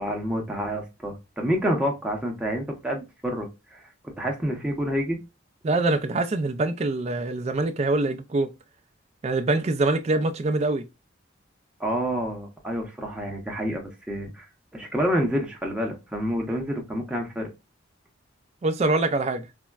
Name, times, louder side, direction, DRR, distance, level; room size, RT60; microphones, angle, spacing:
voice 1, 0.0-3.9 4.2-5.2 11.8-14.5 14.7-17.5, equal, 5° right, 0.7 m, -28 dB
voice 2, 5.6-8.5 9.2-10.8 18.6-19.5, right 2 dB, 30° right, 0.3 m, -24 dB
4.2 x 2.0 x 2.3 m
head